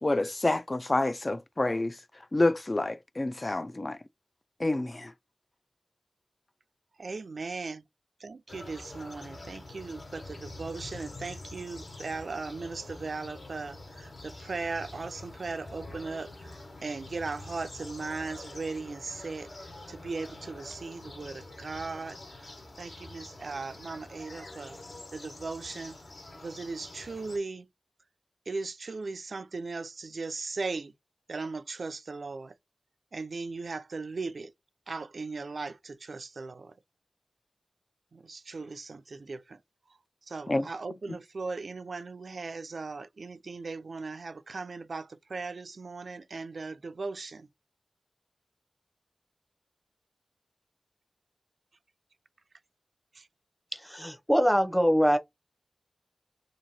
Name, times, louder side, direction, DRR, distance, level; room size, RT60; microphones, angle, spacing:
voice 1, 0.0-1.9 2.3-4.0 4.6-5.1 40.5-40.7, left 2 dB, 35° left, 0.3 m, -28 dB
voice 2, 7.0-7.8 8.2-19.5 19.9-22.2 22.8-24.8 25.1-26.0 26.4-27.7 28.5-30.9 31.3-32.5 33.1-34.5 34.9-36.7 38.1-39.6 40.3-47.5 53.1-53.3, right 3 dB, 75° right, 0.4 m, -38 dB
sound 1, 8.5-27.4, left 2 dB, 65° left, 1.3 m, -46 dB
voice 3, 53.7-55.2, equal, ahead, 0.7 m, -24 dB
2.9 x 2.6 x 4.1 m
wide cardioid pair, 85°, 0 cm